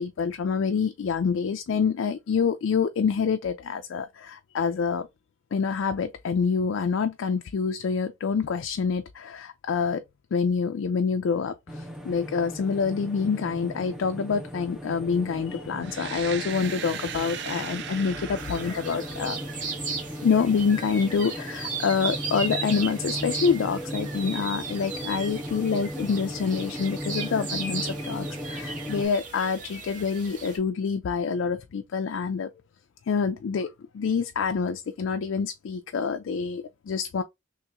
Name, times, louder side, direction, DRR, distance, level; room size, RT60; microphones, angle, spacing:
voice 1, 0.0-5.1 5.5-10.0 10.3-19.4 20.2-32.5 33.1-37.2, left 5 dB, 70° left, 0.4 m, -27 dB
sound 1, 11.7-29.1, equal, 5° right, 0.5 m, -37 dB
sound 2, 15.8-19.7, right 8 dB, 60° right, 0.4 m, -38 dB
sound 3, 18.4-30.6, right 4 dB, 40° right, 1.3 m, -36 dB
3.1 x 2.8 x 3.5 m
head